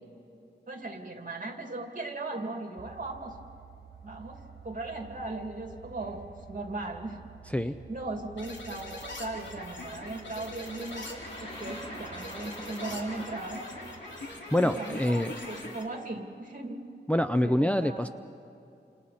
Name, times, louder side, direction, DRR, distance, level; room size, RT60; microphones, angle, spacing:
voice 1, 0.7-3.4 4.0-4.4 4.6-6.2 6.5-7.5 7.9-13.6 14.6-16.8 17.4-18.1, right 2 dB, 50° right, 3 dB, 2.6 m, -38 dB
sound 1, 2.8-14.4, right 6 dB, 65° right, 0.9 m, -51 dB
sound 2, 8.4-15.8, left 2 dB, 85° left, 3.0 m, -42 dB
sound 3, 9.8-15.1, equal, 30° left, 3.6 m, -46 dB
voice 2, 14.5-15.3 17.1-18.1, left 1 dB, 5° left, 8 dB, 0.5 m, -25 dB
29.0 x 27.5 x 4.2 m, 2.7 s
wide cardioid pair, 85°, 18 cm